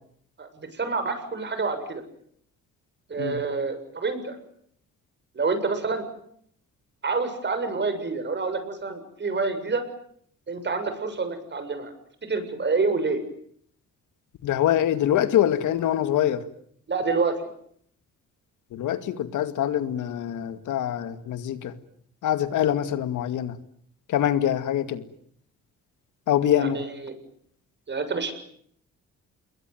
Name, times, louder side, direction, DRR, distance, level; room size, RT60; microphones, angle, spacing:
voice 1, 0.4-2.0 3.1-4.4 5.4-6.0 7.0-9.8 10.5-11.9 12.3-13.2 16.9-17.3 26.6-27.1 27.9-28.3, right 4 dB, 35° right, 9 dB, 7.2 m, -27 dB
voice 2, 14.4-16.5 18.7-21.7 22.2-23.6 24.1-25.0 26.3-26.8, left 11 dB, 80° left, 11 dB, 2.3 m, -24 dB
27.5 x 22.0 x 9.4 m, 0.67 s
cardioid pair, 90°, 30 cm